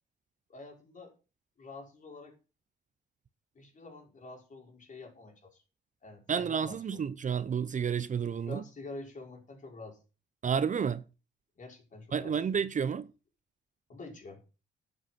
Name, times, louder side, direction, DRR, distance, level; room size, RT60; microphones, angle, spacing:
voice 1, 0.5-1.1 1.6-2.4 3.6-5.6 6.0-7.0 8.5-10.0 11.6-12.4 13.9-14.4, left 3 dB, 40° left, 5.2 m, -47 dB
voice 2, 6.3-8.6 10.4-11.0 12.1-13.1, right 7 dB, 40° right, 0.8 m, -30 dB
11.0 x 8.1 x 6.0 m
cardioid pair, 90°, 20 cm